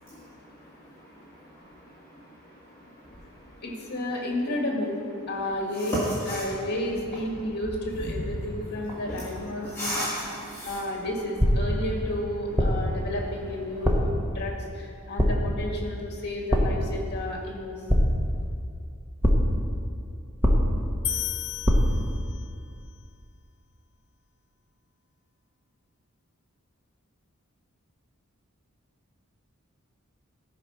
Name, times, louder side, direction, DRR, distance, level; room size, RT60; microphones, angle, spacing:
voice 1, 0.0-3.6 5.8-6.5 8.0-8.1 8.7-8.8 9.1-10.8, equal, 10° left, -9 dB, 1.4 m, -36 dB
voice 2, 3.6-5.0 5.3-6.0 6.3-10.1 10.6-17.7, left 1 dB, 50° left, -1 dB, 2.0 m, -32 dB
sound 1, 11.4-11.9 12.6-13.0 13.8-14.2 15.2-15.6 16.5-16.9 17.9-18.4 19.2-19.7 20.4-21.0 21.6-22.1, equal, 10° right, 0.9 m, -22 dB
sound 2, 21.0-22.7, left 12 dB, 65° left, 0.4 m, -33 dB
14.5 x 5.0 x 5.8 m, 2.4 s
head